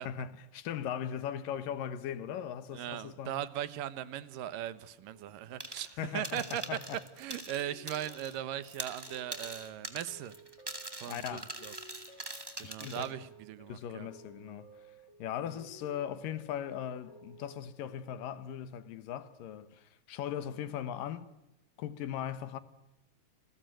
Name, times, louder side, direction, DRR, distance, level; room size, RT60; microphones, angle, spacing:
voice 1, 0.0-3.4 6.0-7.0 11.1-11.5 12.6-13.1 13.7-14.7 15.2-21.3 21.8-22.6, left 9 dB, 80° left, 2.9 m, -39 dB
voice 2, 2.7-5.9 6.1-6.6 7.2-10.3 11.0-11.7 12.6-14.1, right 11 dB, 80° right, 2.7 m, -39 dB
sound 1, 5.1-18.2, right 1 dB, 55° left, 5.0 m, -58 dB
sound 2, 5.6-6.0 6.2-8.4 8.6-13.1, right 1 dB, 10° right, 1.6 m, -43 dB
28.5 x 20.5 x 9.1 m
omnidirectional pair, 3.9 m